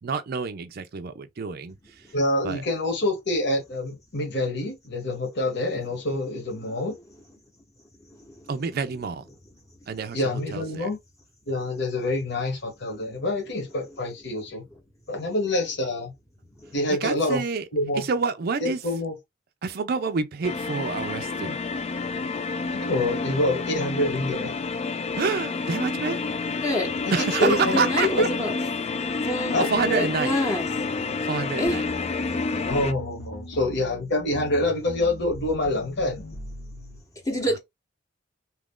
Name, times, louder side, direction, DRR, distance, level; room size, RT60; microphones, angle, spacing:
voice 1, 0.0-2.1 2.4-2.6 8.5-9.3 9.9-10.9 16.9-17.7 17.9-18.8 19.6-21.6 25.1-26.2 27.1-28.3 29.6-30.4 31.2-31.8, right 5 dB, 55° right, 0.4 m, -28 dB
voice 2, 2.1-6.9 10.1-11.0 11.5-14.6 15.1-16.1 16.7-17.4 17.7-18.0 18.6-19.1 22.7-24.5 27.0-27.8 28.2-28.3 29.5-29.7 32.7-36.2, left 1 dB, 65° left, 1.3 m, -26 dB
voice 3, 12.9-13.2 16.6-16.7 26.6-26.9 27.4-28.5 29.2-31.0 31.6-31.8 37.2-37.6, equal, 15° left, 0.9 m, -27 dB
sound 1, 20.4-32.9, left 4 dB, 35° left, 0.3 m, -29 dB
sound 2, 31.7-37.0, equal, 80° left, 1.0 m, -40 dB
2.9 x 2.4 x 3.6 m
head